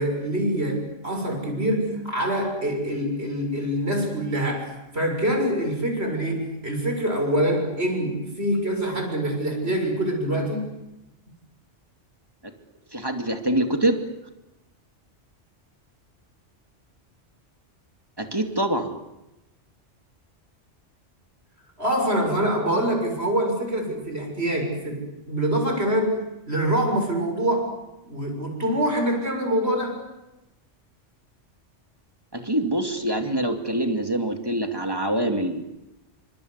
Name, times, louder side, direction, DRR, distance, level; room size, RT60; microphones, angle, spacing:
voice 1, 0.0-10.6 21.8-26.1 26.5-27.7 28.0-30.0, right 1 dB, 60° right, 3 dB, 7.1 m, -25 dB
voice 2, 12.9-14.0 18.2-18.9 32.3-35.6, right 1 dB, 20° right, 5 dB, 2.6 m, -25 dB
28.5 x 25.0 x 8.2 m, 0.93 s
omnidirectional pair, 1.2 m